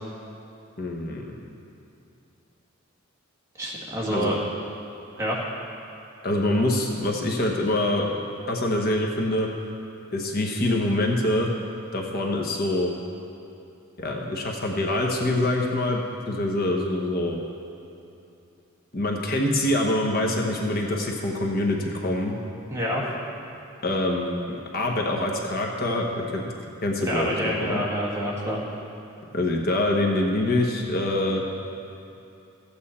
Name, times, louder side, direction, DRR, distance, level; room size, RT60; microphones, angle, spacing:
voice 1, 0.8-1.4 4.1-4.4 6.2-8.1 8.5-9.5 10.1-11.5 11.9-12.9 14.0-17.4 18.9-22.3 23.8-26.5 26.8-27.8 29.3-31.4, left 1 dB, 45° left, 1 dB, 1.0 m, -25 dB
voice 2, 3.6-4.4 5.2-5.4 22.7-23.0 27.0-28.6, equal, 15° right, -5 dB, 1.7 m, -27 dB
13.5 x 8.8 x 4.2 m, 2.8 s
head